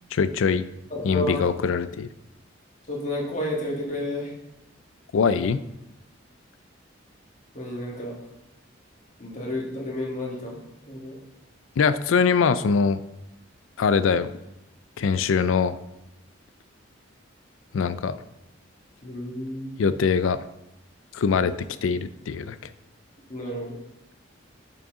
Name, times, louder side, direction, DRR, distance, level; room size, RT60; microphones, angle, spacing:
voice 1, 0.1-0.7 1.0-2.1 5.1-5.6 11.8-13.0 13.8-14.3 15.0-15.8 17.7-18.2 19.8-20.4 21.1-22.6, left 5 dB, 80° left, 13 dB, 0.4 m, -22 dB
voice 2, 0.9-1.4 2.9-4.3 7.5-8.1 9.2-10.6 10.9-11.2 19.0-19.9 23.3-23.8, left 1 dB, 40° left, -2 dB, 1.5 m, -31 dB
6.5 x 5.6 x 3.6 m, 0.90 s
head